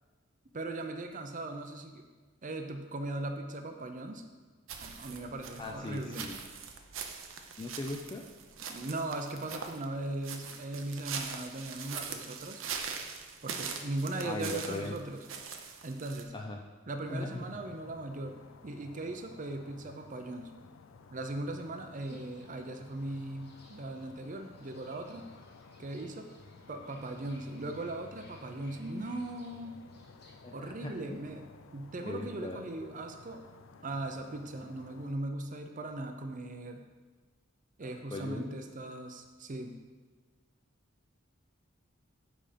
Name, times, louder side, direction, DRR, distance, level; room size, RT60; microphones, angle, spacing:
voice 1, 0.5-2.0 2.4-4.2 4.8-6.3 8.7-12.6 13.4-15.2 15.8-16.3 16.9-20.5 21.1-25.2 25.8-26.3 26.7-29.7 30.5-31.5 31.7-33.4 33.8-36.8 37.8-39.7, right 2 dB, 40° right, 5 dB, 0.6 m, -39 dB
sound 1, 4.7-16.2, right 6 dB, 80° right, 0.7 m, -42 dB
voice 2, 5.6-6.4 7.6-8.2 14.2-14.9 16.3-16.6 17.1-17.5 22.1-22.2 30.4-31.3 32.0-32.6 37.8-38.6, left 2 dB, 25° left, 0 dB, 0.4 m, -39 dB
sound 2, 17.0-35.1, left 4 dB, 85° left, 0.5 m, -55 dB
Fowl / Bird, 21.9-30.3, left 2 dB, 55° left, 1.5 m, -62 dB
7.7 x 4.9 x 5.1 m, 1.4 s
head